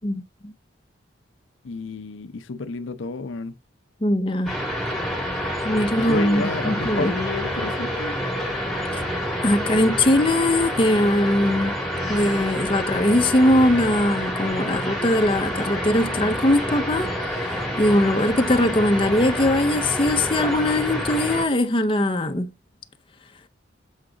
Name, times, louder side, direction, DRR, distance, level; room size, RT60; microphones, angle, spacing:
voice 1, 0.0-0.5 4.0-4.6 5.6-7.2 8.9-9.0 9.4-11.8 12.1-17.1 17.8-22.5, left 1 dB, 25° left, 0.6 m, -21 dB
voice 2, 1.6-3.5 5.5-5.6 6.1-8.2, left 3 dB, 85° left, 0.5 m, -31 dB
sound 1, 4.5-21.5, equal, ahead, 2.1 m, -28 dB
7.3 x 4.7 x 3.8 m
head